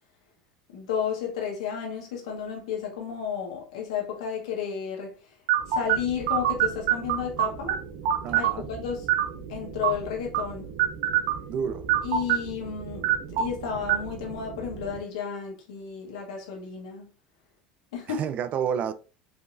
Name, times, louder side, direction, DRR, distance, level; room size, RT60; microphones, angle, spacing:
voice 1, 0.7-5.1 5.7-7.8 8.4-9.1 9.5-10.7 12.0-13.0 13.4-17.1 17.9-18.2, left 7 dB, 90° left, 1.5 m, -32 dB
sound 1, 5.5-15.0, right 11 dB, 80° right, 0.7 m, -28 dB
voice 2, 8.2-8.7 11.5-11.9 18.1-18.9, right 8 dB, 50° right, 0.5 m, -29 dB
4.9 x 2.9 x 2.6 m
supercardioid pair, 105°, 3 cm